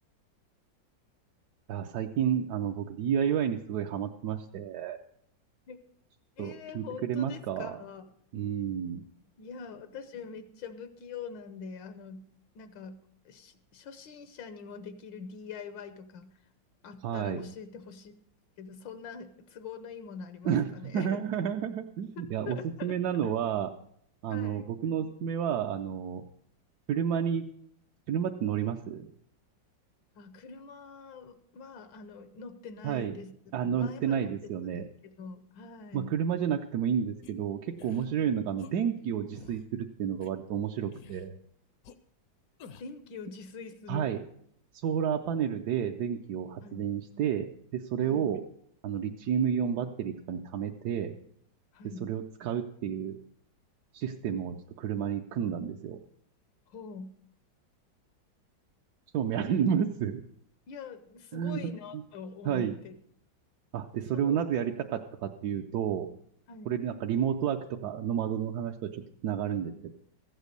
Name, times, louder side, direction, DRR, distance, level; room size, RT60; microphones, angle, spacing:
voice 1, 1.7-5.0 6.4-7.8 8.3-9.0 17.0-17.4 20.4-23.7 24.2-26.3 26.9-27.4 28.1-29.1 32.8-33.2 33.5-34.9 35.9-41.4 43.9-44.2 44.7-48.4 48.8-51.2 52.0-53.2 53.9-56.0 59.1-60.2 61.3-62.0 62.4-62.8 63.7-66.1 66.7-69.9, right 8 dB, 70° right, 3 dB, 1.1 m, -31 dB
voice 2, 6.4-8.0 9.4-12.2 12.5-13.0 13.2-16.3 16.8-18.1 18.6-21.2 22.2-23.3 24.3-24.7 30.1-33.3 33.6-36.1 38.2-38.4 42.8-44.1 46.6-46.8 48.0-48.3 51.7-52.1 56.7-57.1 60.7-62.9 64.2-64.4 66.5-66.7, left 5 dB, 80° left, 11 dB, 1.6 m, -44 dB
sound 1, 37.2-37.3 37.8-38.1 38.6-38.7 39.3-39.6 40.2-40.3 40.9-41.3 41.8-41.9 42.6-43.0, left 6 dB, 65° left, 1.0 m, -50 dB
14.5 x 8.2 x 6.6 m, 0.67 s
omnidirectional pair, 2.0 m